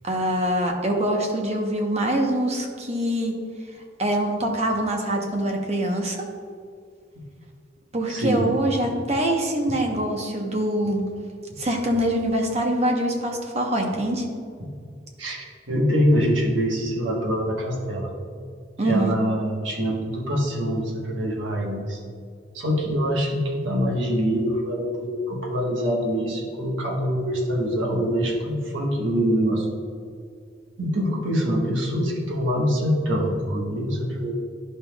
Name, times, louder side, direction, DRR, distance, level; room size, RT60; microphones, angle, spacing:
voice 1, 0.0-3.3 4.0-6.2 7.9-11.0 11.6-14.2 18.8-19.2, right 1 dB, 35° right, 1 dB, 0.9 m, -24 dB
voice 2, 8.1-8.5 14.6-14.7 15.2-18.1 18.8-22.0 22.5-29.7 30.8-34.3, equal, 75° right, -2 dB, 1.3 m, -24 dB
11.0 x 5.5 x 2.3 m, 2.2 s
head